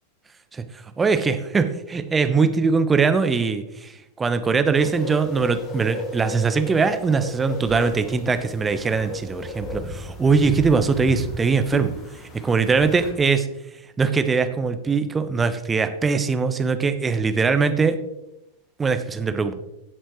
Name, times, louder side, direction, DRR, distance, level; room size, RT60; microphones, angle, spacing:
voice 1, 1.0-3.9 4.2-11.9 12.4-13.5 14.0-18.0 18.8-19.5, right 5 dB, 15° right, 9 dB, 1.0 m, -21 dB
sound 1, 4.7-13.1, left 2 dB, 25° left, 2.6 m, -35 dB
16.0 x 7.9 x 3.1 m, 0.90 s
figure-of-eight pair, 90°, 0 cm